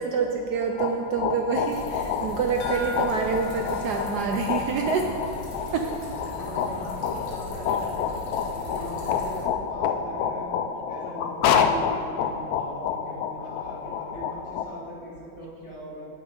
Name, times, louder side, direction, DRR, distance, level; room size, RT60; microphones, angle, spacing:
voice 1, 0.0-5.2 5.7-5.9, right 5 dB, 75° right, 3 dB, 0.9 m, -27 dB
sound 1, 0.6-14.6, left 7 dB, 85° left, 0.8 m, -29 dB
sound 2, 1.7-9.4, left 1 dB, 60° left, 2.3 m, -40 dB
sound 3, 2.6-5.1 5.4-5.5 6.0-6.1, right 1 dB, 40° left, 1.4 m, -41 dB
voice 2, 5.5-8.2 8.7-10.5 10.9-16.0, equal, 15° left, -8 dB, 2.5 m, -40 dB
8.5 x 8.0 x 5.1 m, 2.5 s
omnidirectional pair, 2.2 m